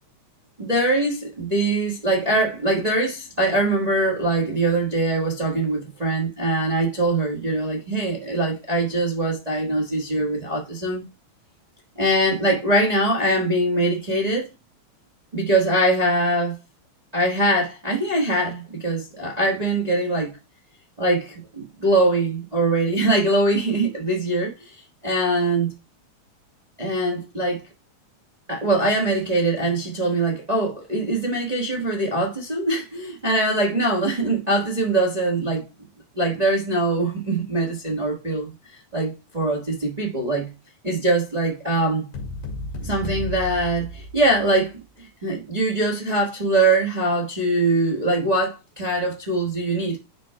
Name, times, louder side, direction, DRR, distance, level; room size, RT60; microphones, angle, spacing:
voice 1, 0.6-11.0 12.0-14.5 15.3-16.6 17.1-20.3 21.0-24.7 25.0-25.7 26.8-27.6 28.5-35.6 36.1-40.5 40.8-42.1 42.8-50.0, right 2 dB, 40° right, 0.5 m, -22 dB
sound 1, 42.1-44.6, left 1 dB, 90° left, 3.6 m, -33 dB
10.0 x 5.2 x 2.2 m
omnidirectional pair, 3.4 m